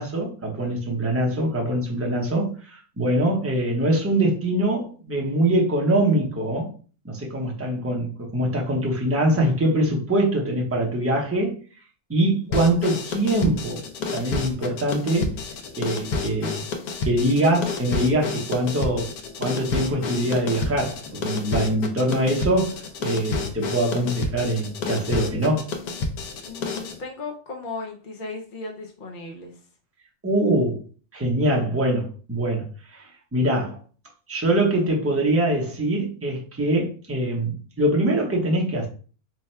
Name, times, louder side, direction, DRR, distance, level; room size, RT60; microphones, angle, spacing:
voice 1, 0.0-6.7 7.0-11.6 12.1-13.8 14.1-15.3 15.8-16.7 17.0-19.1 19.4-25.7 30.2-30.8 31.1-32.7 32.9-33.1 33.3-33.8 34.3-38.9, right 1 dB, 15° right, -1 dB, 0.6 m, -23 dB
sound 1, 12.5-27.0, left 4 dB, 90° left, 1.2 m, -30 dB
voice 2, 26.4-29.6, left 3 dB, 50° left, 1 dB, 0.6 m, -36 dB
3.4 x 2.2 x 4.2 m, 0.39 s
omnidirectional pair, 1.5 m